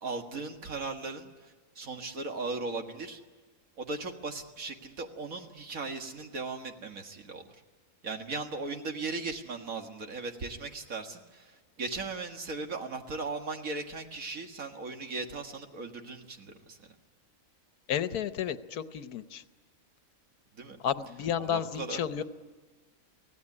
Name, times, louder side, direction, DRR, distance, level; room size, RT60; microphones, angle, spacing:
voice 1, 0.0-3.2 3.8-7.6 8.0-16.9 20.5-20.8 21.4-22.2, right 3 dB, 65° right, 4 dB, 2.1 m, -38 dB
voice 2, 17.9-19.4 20.8-22.2, left 9 dB, 90° left, 12 dB, 1.4 m, -32 dB
24.5 x 16.5 x 9.7 m, 1.4 s
omnidirectional pair, 1.5 m